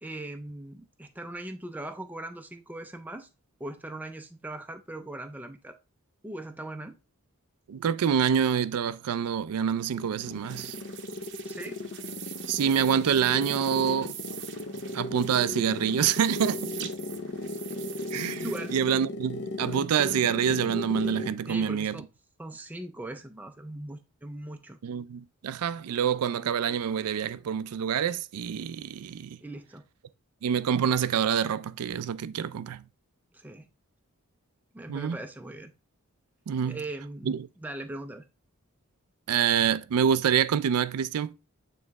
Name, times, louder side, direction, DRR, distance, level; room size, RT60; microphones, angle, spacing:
voice 1, 0.0-3.3 3.6-5.8 6.2-7.0 11.4-11.8 18.4-18.7 21.5-22.1 22.4-24.8 29.4-29.8 33.3-33.7 34.7-35.7 36.6-38.2, right 1 dB, 5° right, 0.4 m, -39 dB
voice 2, 7.7-10.8 12.5-14.2 14.9-16.9 18.1-22.0 24.8-29.4 30.4-32.8 34.9-35.2 36.5-36.8 37.2-37.4 39.3-41.3, right 8 dB, 90° right, 0.4 m, -26 dB
sound 1, 9.7-21.5, left 2 dB, 50° left, 0.6 m, -37 dB
sound 2, 10.2-18.8, right 10 dB, 50° right, 0.7 m, -44 dB
8.7 x 3.1 x 3.5 m
head